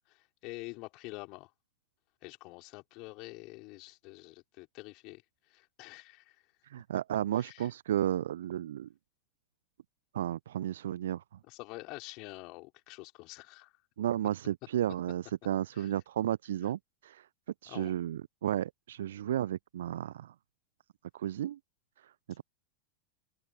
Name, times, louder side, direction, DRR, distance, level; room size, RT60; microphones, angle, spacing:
voice 1, 0.1-1.5 2.2-5.2 5.5-6.4 7.4-7.7 11.5-13.7 15.8-15.9 17.7-17.9, left 25 dB, 40° left, 5.1 m, -47 dB
voice 2, 6.6-8.9 10.1-11.2 14.0-17.3 17.6-20.3 21.1-21.6 22.0-22.4, right 11 dB, 60° right, 0.7 m, -33 dB
open air
figure-of-eight pair, 90°, 0 cm